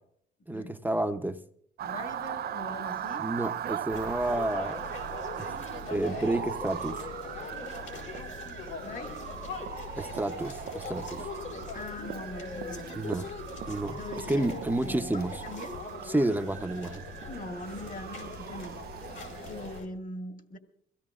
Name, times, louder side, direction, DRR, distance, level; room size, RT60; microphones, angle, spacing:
voice 1, 0.5-1.4 3.2-4.9 5.4-5.5 5.9-7.1 10.0-11.3 12.9-13.3 13.7-15.4 16.1-17.0, right 1 dB, 10° right, 0.8 m, -30 dB
voice 2, 1.8-3.3 8.6-9.1 11.7-13.1 13.9-15.8 17.3-19.0 19.4-20.6, left 2 dB, 40° left, 1.9 m, -42 dB
Motor vehicle (road) / Siren, 1.8-19.8, right 10 dB, 55° right, 0.4 m, -39 dB
sound 1, 3.9-19.9, left 4 dB, 75° left, 4.9 m, -42 dB
23.0 x 16.5 x 2.5 m
cardioid pair, 90°, 20 cm